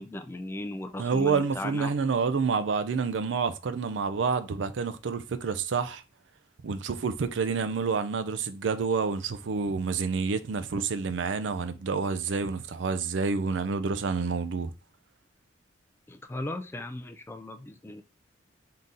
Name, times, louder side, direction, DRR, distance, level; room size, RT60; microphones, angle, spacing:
voice 1, 0.0-1.9 16.1-18.0, left 1 dB, 15° left, 0.3 m, -37 dB
voice 2, 1.0-6.0 6.6-14.7, right 5 dB, 80° right, 0.5 m, -28 dB
3.8 x 2.7 x 3.7 m
head